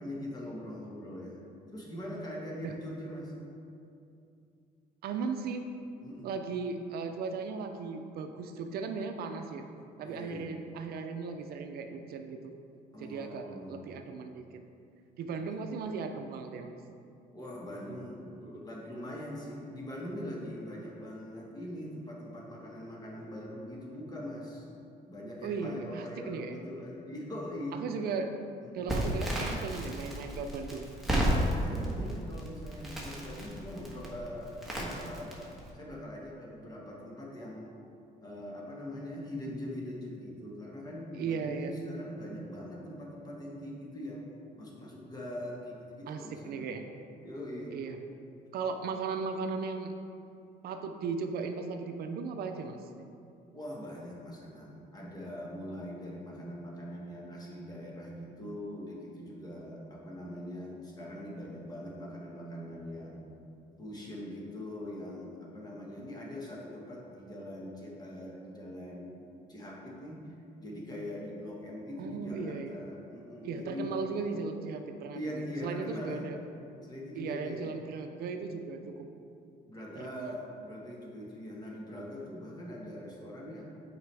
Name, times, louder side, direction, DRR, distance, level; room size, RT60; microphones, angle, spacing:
voice 1, 0.0-1.4 1.7-3.3 6.0-6.3 10.0-10.5 12.9-14.0 15.3-15.6 17.3-24.7 25.1-27.8 28.6-28.8 31.6-35.4 35.7-37.7 38.2-44.3 44.6-46.7 47.2-47.8 53.5-63.3 63.8-69.1 69.5-70.2 70.6-74.0 75.1-76.2 76.8-77.7 79.7-83.6, left 1 dB, 25° left, -3 dB, 1.5 m, -42 dB
voice 2, 5.0-5.7 6.2-9.6 10.0-12.5 13.0-14.6 15.2-16.7 25.4-26.6 27.7-28.3 28.7-30.9 41.2-41.7 46.1-46.9 47.7-48.0 48.5-49.9 50.6-52.8 72.0-72.8 73.4-76.4 77.1-79.1 80.0-80.4, right 5 dB, 65° right, 6 dB, 0.5 m, -37 dB
Crackle, 28.9-35.7, right 1 dB, ahead, 1.3 m, -33 dB
8.0 x 4.9 x 3.4 m, 2.5 s
cardioid pair, 110°, 17 cm